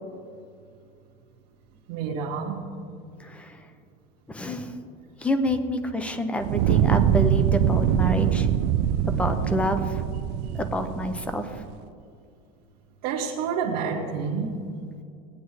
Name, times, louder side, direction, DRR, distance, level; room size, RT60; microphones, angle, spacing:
voice 1, 1.9-2.6 13.0-14.6, right 6 dB, 70° right, -4 dB, 1.2 m, -28 dB
voice 2, 3.2-3.6 4.3-4.8 5.2-8.5 9.1-10.0 10.5-11.6, equal, 5° left, 8 dB, 0.5 m, -28 dB
Fire, 6.4-11.6, right 9 dB, 55° right, 0.5 m, -23 dB
18.0 x 9.4 x 3.1 m, 2.3 s
cardioid pair, 165°, 20 cm